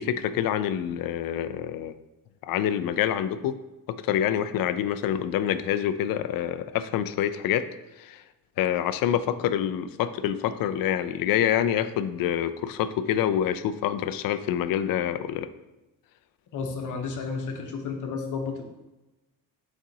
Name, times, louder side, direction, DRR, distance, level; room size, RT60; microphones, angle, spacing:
voice 1, 0.0-2.0 2.4-3.6 3.9-7.7 8.0-8.2 8.6-15.5, left 10 dB, 70° left, 12 dB, 0.5 m, -26 dB
voice 2, 16.5-18.6, left 5 dB, 55° left, 3 dB, 1.0 m, -32 dB
8.7 x 4.2 x 2.8 m, 1.1 s
cardioid pair, 170°, 35 cm